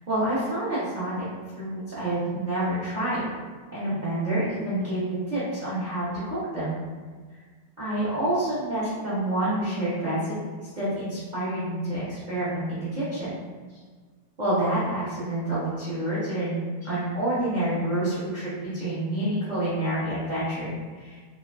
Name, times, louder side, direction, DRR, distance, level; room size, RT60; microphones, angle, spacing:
voice 1, 0.1-1.3 1.6-3.3 3.7-6.8 7.8-10.2 10.6-13.3 14.4-20.7 21.0-21.2, right 1 dB, 65° right, -11 dB, 0.4 m, -28 dB
3.3 x 2.2 x 2.3 m, 1.5 s
omnidirectional pair, 2.0 m